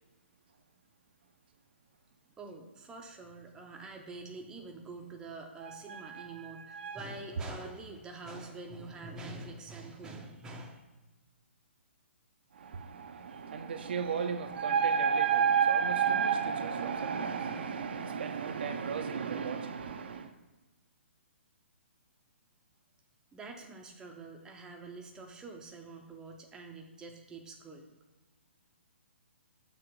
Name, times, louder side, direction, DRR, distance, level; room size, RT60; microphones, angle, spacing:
voice 1, 2.4-10.8 23.3-27.8, right 3 dB, 10° right, 2 dB, 0.6 m, -46 dB
voice 2, 5.6-7.0 7.4-7.5 12.5-20.3, right 7 dB, 50° right, 7 dB, 0.5 m, -31 dB
6.9 x 2.9 x 5.2 m, 1.2 s
figure-of-eight pair, 125°, 7 cm